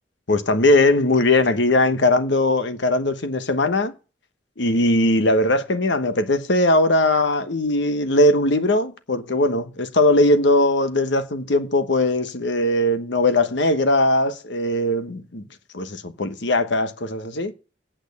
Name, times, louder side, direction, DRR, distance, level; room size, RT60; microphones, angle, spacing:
voice 1, 0.3-3.9 4.6-15.4 15.7-17.5, left 2 dB, 70° left, 1.1 m, -20 dB
8.7 x 6.3 x 8.2 m
head